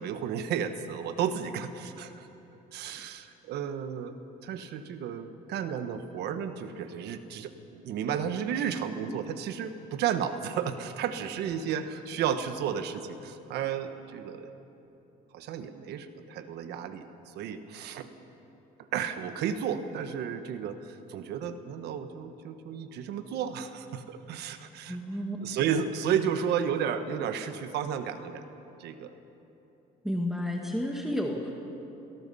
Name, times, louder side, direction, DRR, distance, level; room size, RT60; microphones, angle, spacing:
voice 1, 0.0-2.3 2.7-4.2 4.4-14.5 15.3-18.1 18.9-25.0 25.4-28.4 28.8-29.2, right 8 dB, 80° right, 9 dB, 1.4 m, -33 dB
voice 2, 24.9-25.4 30.0-31.5, left 1 dB, ahead, 0 dB, 1.8 m, -31 dB
28.5 x 18.0 x 5.6 m, 3.0 s
cardioid pair, 110°, 17 cm